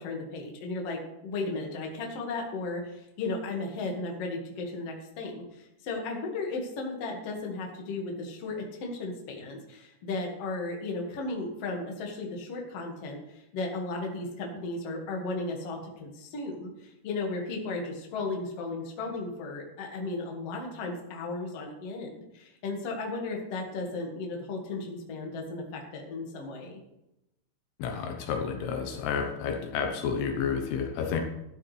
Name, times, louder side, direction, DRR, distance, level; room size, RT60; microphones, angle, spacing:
voice 1, 0.0-26.7, left 3 dB, 45° left, 0 dB, 2.3 m, -35 dB
voice 2, 27.8-31.2, left 6 dB, 75° left, 4 dB, 2.9 m, -30 dB
12.0 x 12.0 x 3.3 m, 0.87 s
omnidirectional pair, 4.9 m